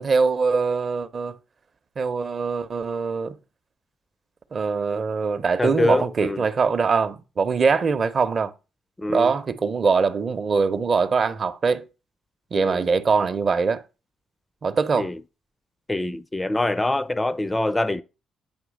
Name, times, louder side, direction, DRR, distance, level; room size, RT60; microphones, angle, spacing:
voice 1, 0.0-1.4 2.0-3.4 4.5-8.5 9.1-11.9 12.5-13.8 14.6-15.1, right 5 dB, 45° right, 0.6 m, -22 dB
voice 2, 5.6-6.4 9.0-9.3 12.5-12.9 15.0-15.1 15.9-18.0, left 2 dB, 15° left, 0.4 m, -24 dB
8.8 x 3.1 x 6.3 m
cardioid pair, 90°, 0 cm